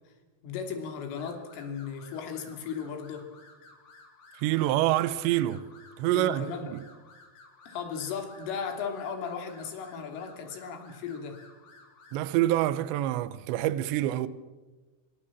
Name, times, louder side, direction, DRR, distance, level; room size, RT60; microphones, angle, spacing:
voice 1, 0.4-3.3 6.1-6.7 7.7-11.4, left 6 dB, 85° left, 5.4 m, -36 dB
sound 1, 1.1-12.3, left 3 dB, 70° left, 7.8 m, -55 dB
voice 2, 4.3-5.7 6.0-6.8 12.1-14.3, right 14 dB, 75° right, 3.0 m, -26 dB
26.0 x 23.0 x 7.4 m
omnidirectional pair, 5.5 m